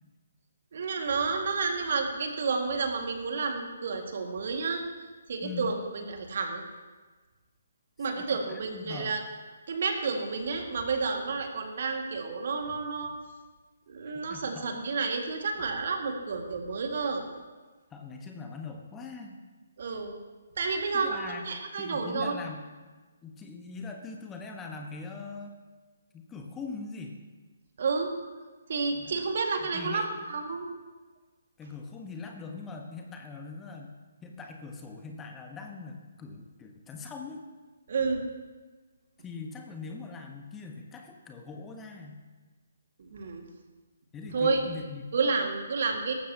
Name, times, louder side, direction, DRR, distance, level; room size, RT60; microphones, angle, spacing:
voice 1, 0.7-4.8 5.3-6.6 8.0-9.2 9.7-13.1 13.9-17.2 19.8-20.2 20.6-22.3 27.8-28.1 28.7-30.7 37.9-38.2 43.0-43.4 44.3-44.6 45.1-46.1, right 4 dB, 50° right, 3 dB, 2.0 m, -30 dB
voice 2, 8.1-9.2 14.3-14.7 17.9-19.4 20.9-21.5 21.8-22.7 23.2-25.6 26.1-27.2 28.9-29.2 29.6-30.1 31.6-33.9 34.2-37.4 39.2-42.2 44.1-45.0, left 4 dB, 10° left, 3 dB, 1.2 m, -41 dB
18.5 x 14.0 x 2.9 m, 1.3 s
figure-of-eight pair, 135°, 0 cm